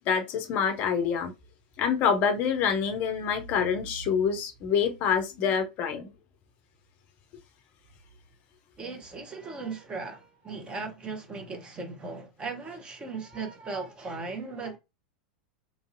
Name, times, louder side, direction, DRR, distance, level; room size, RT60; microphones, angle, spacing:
voice 1, 0.1-1.3 1.8-6.1, left 7 dB, 40° left, 0.5 m, -26 dB
voice 2, 8.8-14.8, right 4 dB, 20° right, 0.8 m, -37 dB
3.1 x 2.5 x 2.5 m
figure-of-eight pair, 90°, 4 cm